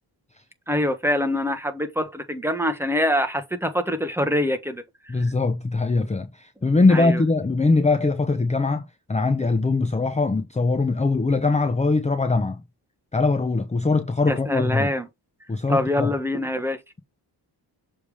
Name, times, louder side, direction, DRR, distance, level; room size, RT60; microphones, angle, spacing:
voice 1, 0.7-4.8 6.9-7.2 14.3-15.1 15.7-16.8, left 1 dB, 5° right, 1.2 m, -24 dB
voice 2, 5.1-12.6 13.1-14.9 15.5-16.1, left 3 dB, 15° left, 0.7 m, -22 dB
6.8 x 3.4 x 4.9 m
cardioid pair, 90°, 43 cm